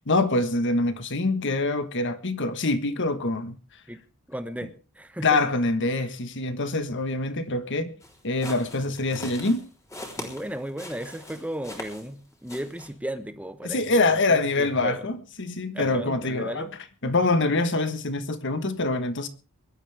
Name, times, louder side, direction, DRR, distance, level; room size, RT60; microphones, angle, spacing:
voice 1, 0.1-3.6 5.2-7.9 8.2-9.6 13.6-16.7 17.0-19.3, left 2 dB, 55° left, 1.5 m, -25 dB
voice 2, 4.3-5.4 10.2-13.8 14.3-15.1 15.7-16.7, right 1 dB, 5° right, 1.1 m, -35 dB
sound 1, 8.0-12.2 12.5-12.9, left 1 dB, 15° left, 3.5 m, -41 dB
22.5 x 12.0 x 3.5 m
head